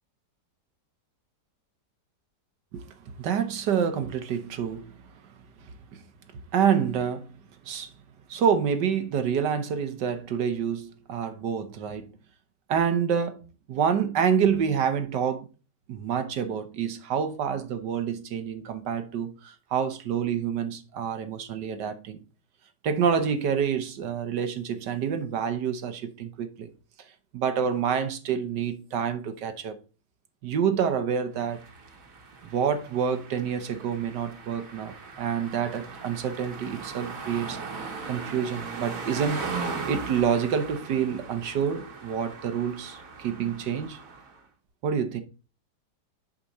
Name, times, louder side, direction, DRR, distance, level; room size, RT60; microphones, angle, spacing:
voice 1, 3.2-4.9 5.9-6.0 6.5-7.3 7.6-7.9 8.3-12.1 12.7-13.4 13.7-15.5 15.9-22.2 22.8-26.7 27.3-29.8 30.4-31.6 32.5-37.6 38.1-39.4 39.9-44.0 44.8-45.2, right 7 dB, 75° right, 1.6 m, -27 dB
sound 1, 31.4-44.4, right 4 dB, 50° right, 1.7 m, -39 dB
10.0 x 5.2 x 4.2 m
omnidirectional pair, 1.9 m